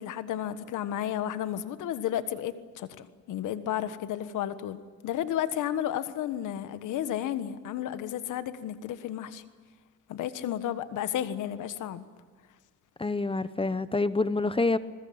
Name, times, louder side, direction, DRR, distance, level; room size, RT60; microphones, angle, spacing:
voice 1, 0.0-4.8 5.0-9.4 10.1-12.0, left 11 dB, 85° left, 1.4 m, -32 dB
voice 2, 13.0-14.8, left 3 dB, 20° left, 0.9 m, -27 dB
28.0 x 21.0 x 8.7 m
cardioid pair, 90°, 30 cm